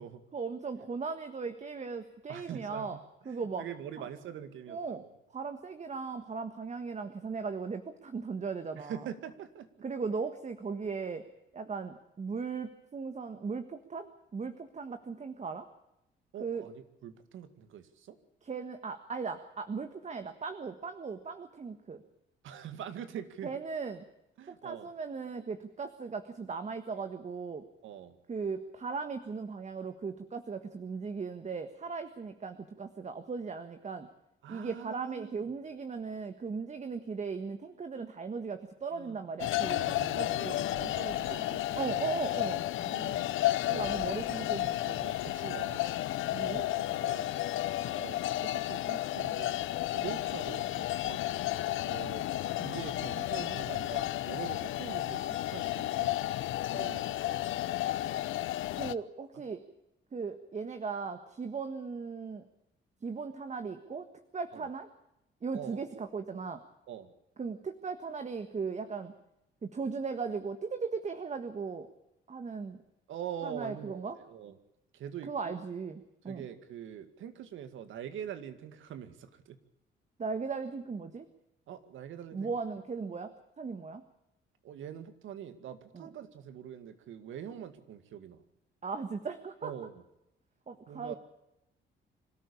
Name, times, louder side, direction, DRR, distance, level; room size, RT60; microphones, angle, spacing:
voice 1, 0.3-3.0 3.2-3.6 4.7-5.0 5.3-9.0 9.8-11.2 11.5-15.7 16.4-16.6 18.4-22.0 23.4-24.0 24.5-27.6 28.3-34.1 34.5-40.4 41.8-42.6 43.6-45.0 46.3-46.6 50.0-50.2 58.8-59.6 60.1-62.5 63.0-64.1 64.3-64.9 65.4-66.6 67.4-69.1 69.6-71.9 72.3-72.8 73.4-74.2 75.3-76.5 80.2-81.3 82.3-83.3 83.6-84.0 85.9-86.1 88.8-89.7 90.7-91.2, right 5 dB, 35° right, 9 dB, 1.6 m, -37 dB
voice 2, 2.3-5.1 8.8-9.7 16.3-18.2 22.4-23.5 24.4-24.9 27.8-28.2 34.4-35.4 38.9-39.3 39.8-42.1 42.7-43.4 43.7-44.5 45.0-45.8 46.4-47.3 47.9-49.6 49.9-51.2 51.8-52.3 52.6-56.1 56.7-57.6 64.5-64.7 65.5-66.1 66.9-67.1 73.1-74.6 74.9-75.6 76.3-79.6 81.7-82.5 84.6-88.4 89.6-90.0 90.9-91.2, right 9 dB, 80° right, 11 dB, 2.1 m, -44 dB
sound 1, 39.4-58.9, left 15 dB, 80° left, 0.8 m, -32 dB
26.0 x 13.5 x 8.5 m, 0.87 s
cardioid pair, 90°, 20 cm